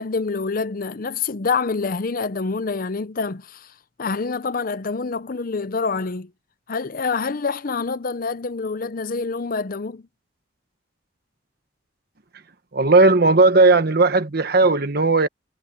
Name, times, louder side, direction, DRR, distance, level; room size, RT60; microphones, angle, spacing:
voice 1, 0.0-3.7 4.0-6.3 6.7-10.0, left 4 dB, 50° left, 0.6 m, -26 dB
voice 2, 12.7-15.3, right 3 dB, 55° right, 1.3 m, -16 dB
head